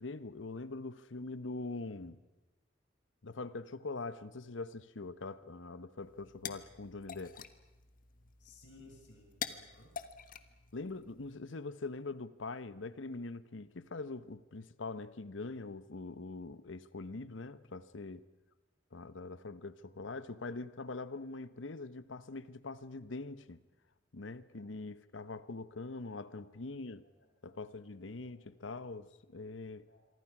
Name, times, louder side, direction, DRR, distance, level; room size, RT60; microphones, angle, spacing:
voice 1, 0.0-2.2 3.2-7.5 10.7-18.2 18.9-23.6 24.1-27.0 27.4-29.8, left 3 dB, 80° left, 1.0 m, -43 dB
sound 1, 6.0-11.3, left 7 dB, 45° left, 1.4 m, -47 dB
voice 2, 8.4-10.0 24.6-25.0 26.4-26.5 27.0-27.3 28.3-28.5 29.9-30.1, left 3 dB, 65° left, 7.3 m, -60 dB
27.0 x 24.0 x 6.0 m
head